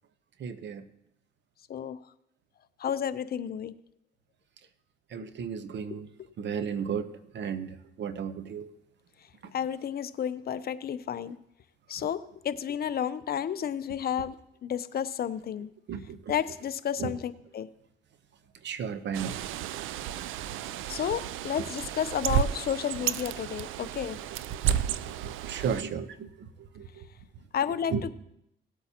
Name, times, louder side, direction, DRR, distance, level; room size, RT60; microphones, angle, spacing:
voice 1, 0.4-0.8 5.1-6.1 6.4-7.1 7.3-8.7 15.9-16.3 17.0-17.1 18.6-19.4 24.7-26.5 26.7-27.1 27.9-28.0, right 7 dB, 65° right, 11 dB, 0.8 m, -34 dB
voice 2, 2.8-3.7 6.2-6.3 9.5-11.4 11.9-14.4 14.6-15.7 16.3-17.7 20.9-24.2 27.5-28.1, left 9 dB, 50° left, 14 dB, 0.5 m, -31 dB
Bird, 19.1-25.8, right 10 dB, 85° right, 0.4 m, -32 dB
18.0 x 8.2 x 2.9 m, 0.79 s
cardioid pair, 90°, 20 cm